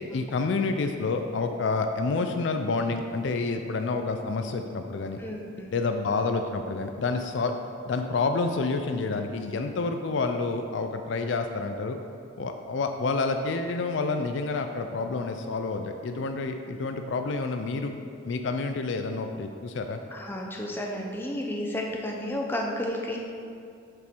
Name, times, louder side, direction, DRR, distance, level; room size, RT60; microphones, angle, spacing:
voice 1, 0.1-5.2 5.7-7.5 7.9-12.0 12.4-17.9 18.2-20.0, left 3 dB, 60° left, 6 dB, 0.4 m, -28 dB
voice 2, 5.2-5.8 20.1-23.2, left 1 dB, 10° left, -1 dB, 0.6 m, -32 dB
6.8 x 5.1 x 4.5 m, 2.5 s
head